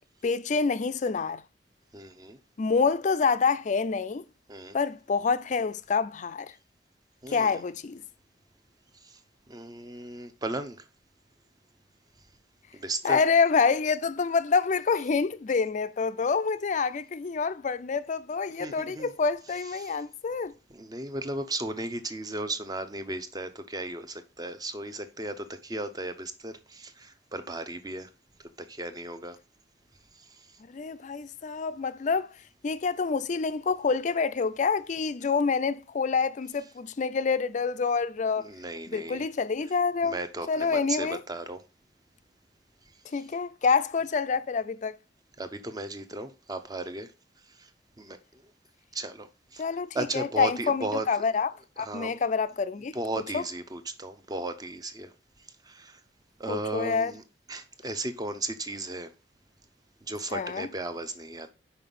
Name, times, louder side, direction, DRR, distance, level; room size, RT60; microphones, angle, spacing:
voice 1, 0.2-1.4 2.6-4.2 4.7-6.5 7.3-8.0 13.0-20.5 30.7-32.3 32.6-38.5 38.9-40.2 40.5-41.2 43.1-45.0 49.6-51.5 51.8-52.9 53.3-53.4 56.5-57.1 60.3-60.7, left 5 dB, 45° left, 0.4 m, -27 dB
voice 2, 1.9-2.4 4.5-4.8 7.2-7.6 9.0-9.2 9.5-10.9 12.7-13.2 18.6-19.1 19.8-20.0 20.7-28.1 28.4-29.4 30.1-30.6 38.4-39.3 40.0-41.6 45.4-47.1 47.5-47.7 48.0-48.5 48.9-49.6 49.9-51.2 51.8-52.2 52.9-55.1 55.6-56.0 56.4-57.2 57.5-59.1 60.0-61.5, right 2 dB, 20° right, 0.7 m, -36 dB
5.7 x 5.0 x 5.4 m
head